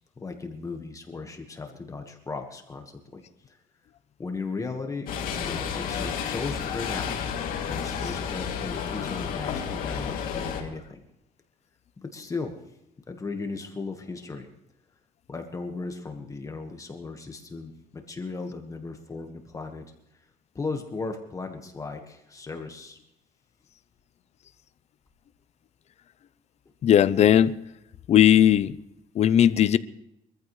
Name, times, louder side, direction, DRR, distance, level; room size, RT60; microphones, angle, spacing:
voice 1, 0.2-3.6 4.2-7.3 7.7-11.0 12.0-12.5 13.1-14.5 15.3-19.8 20.2-20.3 20.5-23.0, left 4 dB, 20° left, 1.5 m, -36 dB
sound 1, 5.1-10.6, left 7 dB, 70° left, 2.8 m, -31 dB
voice 2, 26.8-27.5 28.1-28.8 29.1-29.8, left 10 dB, 45° left, 0.6 m, -18 dB
23.5 x 14.5 x 3.2 m
cardioid pair, 135°, 15 cm